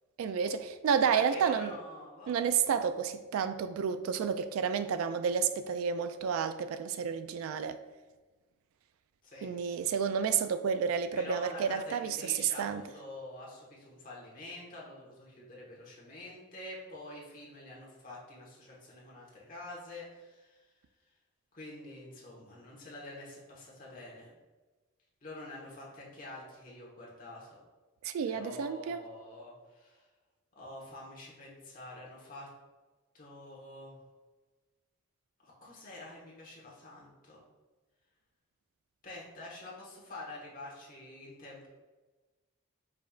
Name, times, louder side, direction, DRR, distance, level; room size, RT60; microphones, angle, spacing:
voice 1, 0.2-1.8 2.3-7.8 9.4-12.8 28.0-29.0, right 7 dB, 90° right, 0.3 m, -30 dB
voice 2, 1.0-2.3 9.2-9.5 11.1-20.6 21.5-24.3 25.2-27.6 28.3-30.0 30.5-32.5 33.1-33.9 35.4-37.4 39.0-41.7, left 2 dB, 40° left, 1.3 m, -47 dB
5.0 x 4.3 x 2.4 m
head